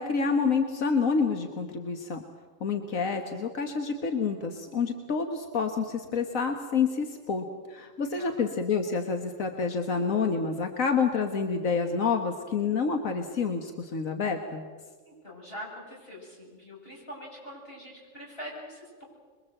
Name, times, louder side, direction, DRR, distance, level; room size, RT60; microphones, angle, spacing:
voice 1, 0.0-2.2 2.6-14.7, left 5 dB, 90° left, 5 dB, 1.9 m, -28 dB
voice 2, 15.0-19.0, equal, 45° left, -3 dB, 8.1 m, -43 dB
27.0 x 22.5 x 7.8 m, 1.5 s
omnidirectional pair, 1.4 m